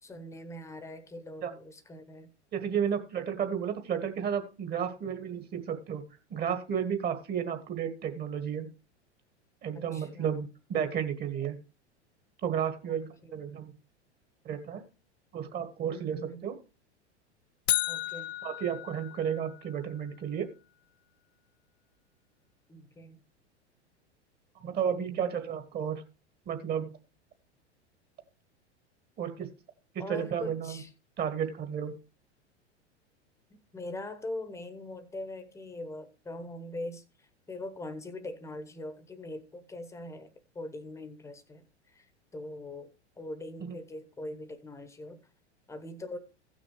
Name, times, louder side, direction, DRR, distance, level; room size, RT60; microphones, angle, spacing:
voice 1, 0.0-2.3 9.7-10.5 12.9-13.0 13.2-13.3 15.9-16.5 17.9-18.4 22.7-23.2 25.0-25.4 30.0-30.9 33.7-40.3 40.5-42.1 42.3-45.2 45.7-46.2, left 1 dB, 10° left, 1.1 m, -42 dB
voice 2, 2.5-6.0 6.3-8.7 9.6-11.6 12.4-13.7 14.4-14.8 15.3-16.5 18.4-20.5 24.5-26.0 26.5-26.9 29.2-29.5 30.1-30.8 31.2-31.9 43.6-43.7, right 8 dB, 30° right, 1.5 m, -32 dB
sound 1, 17.7-19.8, left 14 dB, 60° left, 0.5 m, -33 dB
16.0 x 6.4 x 3.1 m
figure-of-eight pair, 90°, 35 cm